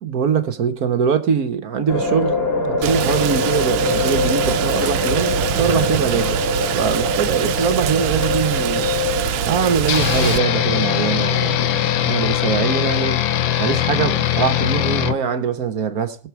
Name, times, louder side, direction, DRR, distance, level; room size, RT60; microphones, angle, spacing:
voice 1, 0.0-6.4 6.7-8.9 9.5-13.2 13.6-16.2, right 7 dB, 50° right, 1.3 m, -22 dB
sound 1, 1.9-13.8, left 2 dB, 25° left, 3.0 m, -24 dB
Rain, 2.8-10.4, right 10 dB, 80° right, 1.5 m, -24 dB
sound 2, 9.9-15.2, left 11 dB, 75° left, 1.5 m, -20 dB
20.0 x 6.9 x 4.6 m
omnidirectional pair, 2.3 m